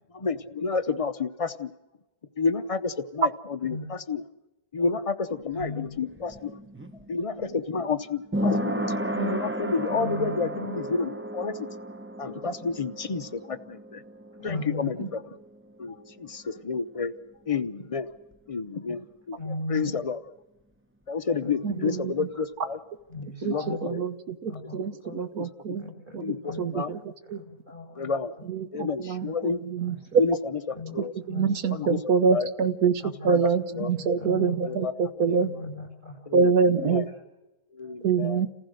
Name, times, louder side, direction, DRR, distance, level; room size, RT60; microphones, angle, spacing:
voice 1, 0.1-1.7 2.4-4.2 4.7-6.5 7.1-11.7 12.2-14.0 14.4-15.3 15.8-17.1 17.5-18.1 18.5-20.2 21.1-22.8 23.4-24.0 25.4-25.5 26.2-26.9 28.0-28.3 28.7-29.6 30.2-30.4 30.8-31.1 31.7-32.0 32.3-32.5 33.3-33.5 33.7-33.9 34.6-34.9 35.2-35.4 36.3-36.5 36.9-37.0 37.7-38.4, left 4 dB, 35° left, 10 dB, 0.5 m, -30 dB
sound 1, 5.2-16.8 17.0-17.1, equal, 10° right, 0.6 m, -34 dB
voice 2, 5.5-5.9 9.9-10.5 14.4-14.9 19.4-19.9 21.4-21.9 23.1-23.8 24.5-25.2 25.8-26.7 27.6-28.1 30.8-31.0 31.3-31.9 33.0-33.3 33.7-33.8 34.2-34.8 35.3-36.1 36.8-36.9, left 2 dB, 30° right, 0 dB, 7.6 m, -37 dB
voice 3, 21.6-22.3 23.4-25.9 26.1-27.0 27.3-27.4 28.5-30.2 31.3-35.5 36.3-37.1 38.0-38.5, right 6 dB, 75° right, 11 dB, 1.6 m, -25 dB
28.5 x 15.5 x 6.5 m, 1.0 s
omnidirectional pair, 1.6 m